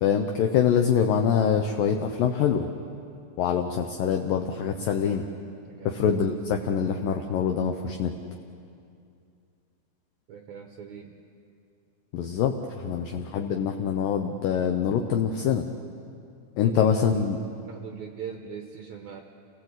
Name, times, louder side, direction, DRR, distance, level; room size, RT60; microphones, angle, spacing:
voice 1, 0.0-2.7 3.4-5.2 5.9-8.1 12.1-15.7 16.6-17.4, left 7 dB, 75° left, 4 dB, 2.2 m, -24 dB
voice 2, 5.7-6.0 10.3-11.2 12.8-13.1 16.7-17.2 17.6-19.2, right 7 dB, 75° right, 3 dB, 1.7 m, -41 dB
28.5 x 17.5 x 8.1 m, 2.4 s
omnidirectional pair, 5.0 m